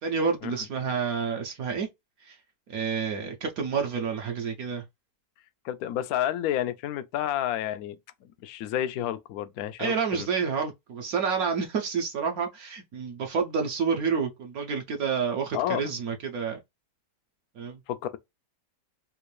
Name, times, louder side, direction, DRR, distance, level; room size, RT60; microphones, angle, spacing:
voice 1, 0.0-1.9 2.2-2.4 2.7-4.8 9.8-16.6 17.5-17.8, right 6 dB, 65° right, 1.0 m, -29 dB
voice 2, 5.6-8.0 8.4-10.3 15.5-15.8 17.9-18.2, left 11 dB, 70° left, 0.9 m, -30 dB
3.5 x 2.5 x 3.1 m
omnidirectional pair, 1.9 m